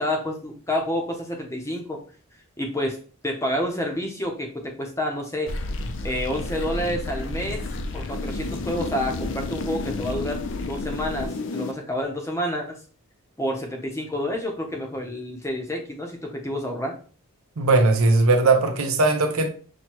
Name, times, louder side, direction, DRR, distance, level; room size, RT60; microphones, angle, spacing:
voice 1, 0.0-2.0 2.6-3.0 3.2-5.5 6.0-7.7 7.9-10.4 10.7-12.8 13.4-17.0, left 1 dB, 15° left, 0.6 m, -29 dB
sound 1, 5.5-11.7, left 2 dB, 55° left, 0.4 m, -31 dB
voice 2, 17.6-19.5, right 3 dB, 75° right, 0.7 m, -19 dB
6.1 x 2.2 x 2.9 m
head